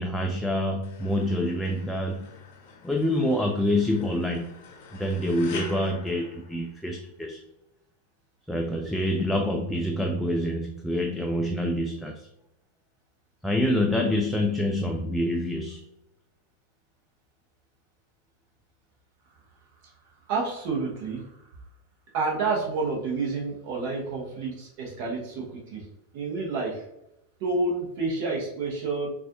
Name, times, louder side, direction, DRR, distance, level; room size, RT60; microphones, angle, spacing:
voice 1, 0.0-2.3 2.8-4.5 4.9-7.4 8.5-12.3 13.4-15.8, left 1 dB, ahead, 1 dB, 0.4 m, -26 dB
sound 1, 0.8-7.1, left 4 dB, 50° left, 0.7 m, -46 dB
voice 2, 20.3-21.2 22.1-25.8 26.1-26.8 27.4-29.1, right 3 dB, 45° right, -1 dB, 1.1 m, -29 dB
6.1 x 2.5 x 2.5 m, 0.86 s
figure-of-eight pair, 90°, 0 cm